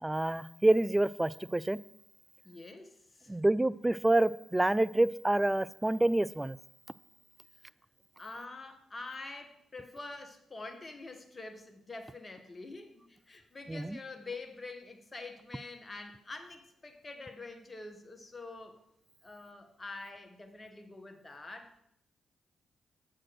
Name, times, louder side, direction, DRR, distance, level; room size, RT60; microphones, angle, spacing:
voice 1, 0.0-1.8 3.3-6.6 13.7-14.0, right 1 dB, 15° right, 18 dB, 0.3 m, -27 dB
voice 2, 2.4-3.4 8.2-18.8 19.2-21.8, left 3 dB, 30° left, 6 dB, 1.4 m, -46 dB
7.4 x 4.4 x 6.3 m, 0.74 s
hypercardioid pair, 40°, 0 cm